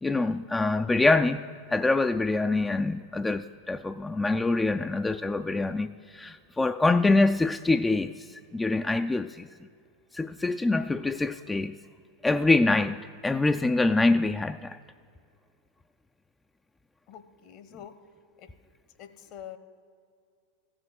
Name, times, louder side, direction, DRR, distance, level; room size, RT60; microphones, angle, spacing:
voice 1, 0.0-9.5 10.1-11.8 12.2-14.8, left 2 dB, 10° left, 0.3 m, -25 dB
voice 2, 17.1-17.9 18.4-18.5 19.0-19.6, left 10 dB, 50° left, 1.0 m, -45 dB
14.5 x 6.2 x 8.0 m
hypercardioid pair, 95°, 0 cm